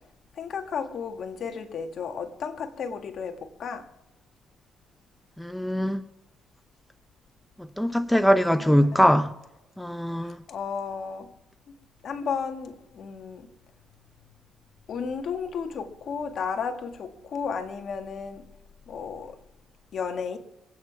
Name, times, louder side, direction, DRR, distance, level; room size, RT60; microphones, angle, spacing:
voice 1, 0.4-3.9 8.1-8.9 10.2-11.3 12.0-13.5 14.9-18.5 18.9-19.4 19.9-20.4, left 6 dB, 60° left, 1.8 m, -33 dB
voice 2, 5.4-6.0 7.6-9.3 9.8-10.4, equal, 5° left, 0.7 m, -22 dB
27.0 x 9.2 x 3.5 m
cardioid pair, 90°, 0 cm